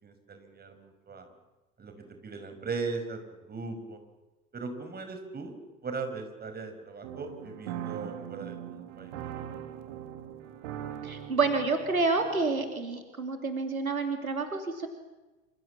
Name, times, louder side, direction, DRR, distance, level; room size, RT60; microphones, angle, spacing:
voice 1, 0.0-1.3 1.8-4.0 4.5-5.5 5.8-9.3, right 4 dB, 25° right, 7 dB, 5.6 m, -39 dB
sound 1, 7.0-12.7, right 10 dB, 60° right, 2.7 m, -41 dB
voice 2, 11.0-14.9, right 3 dB, 80° right, 6 dB, 3.0 m, -29 dB
28.0 x 27.5 x 7.4 m, 1.1 s
figure-of-eight pair, 75°, 41 cm